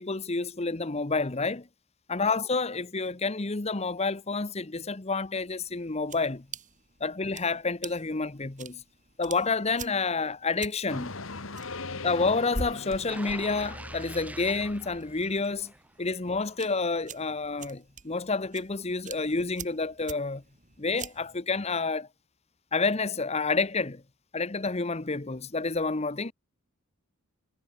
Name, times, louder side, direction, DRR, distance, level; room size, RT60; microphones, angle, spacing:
voice 1, 0.0-1.7 2.1-6.4 7.0-8.8 9.2-11.2 12.0-15.7 16.0-20.4 20.8-22.1 22.7-24.0 24.3-26.3, left 3 dB, 30° left, 0.9 m, -29 dB
sound 1, 5.3-21.4, right 3 dB, 35° right, 6.3 m, -45 dB
sound 2, 10.9-14.3, left 3 dB, 65° left, 1.8 m, -40 dB
sound 3, 13.1-16.0 16.4-16.6, right 1 dB, 5° right, 1.2 m, -44 dB
head